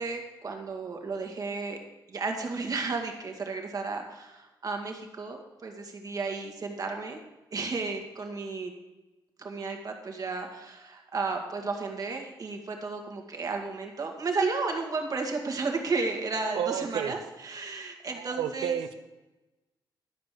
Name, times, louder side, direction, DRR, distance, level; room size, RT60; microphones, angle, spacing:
voice 1, 0.0-1.8 2.1-7.2 7.5-8.7 9.4-18.8, right 4 dB, 45° right, 3 dB, 2.1 m, -33 dB
voice 2, 16.5-17.1 18.1-18.9, right 9 dB, 90° right, 12 dB, 0.7 m, -31 dB
12.0 x 5.2 x 7.6 m, 1.1 s
cardioid pair, 90°, 8 cm